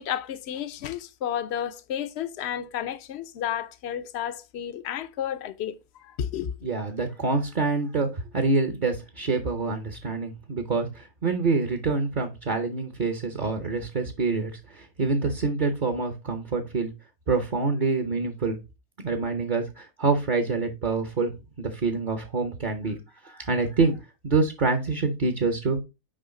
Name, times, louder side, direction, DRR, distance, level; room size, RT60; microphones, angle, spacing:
voice 1, 0.0-6.5, left 10 dB, 60° left, 0.7 m, -32 dB
voice 2, 6.6-16.9 17.3-18.6 19.0-21.3 21.6-23.0 23.2-24.0 24.2-25.8, right 3 dB, 40° right, 0.8 m, -26 dB
6.3 x 4.9 x 3.7 m
omnidirectional pair, 1.7 m